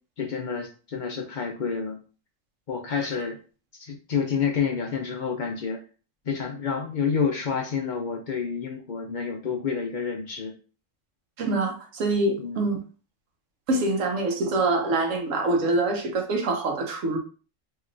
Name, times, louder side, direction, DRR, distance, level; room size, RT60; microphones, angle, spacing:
voice 1, 0.2-2.0 2.7-3.4 3.8-5.8 6.2-10.5 12.4-12.7, left 6 dB, 50° left, 0.6 m, -29 dB
voice 2, 11.4-12.8 13.7-17.2, right 2 dB, 85° right, 1.1 m, -25 dB
2.9 x 2.9 x 2.5 m
omnidirectional pair, 1.3 m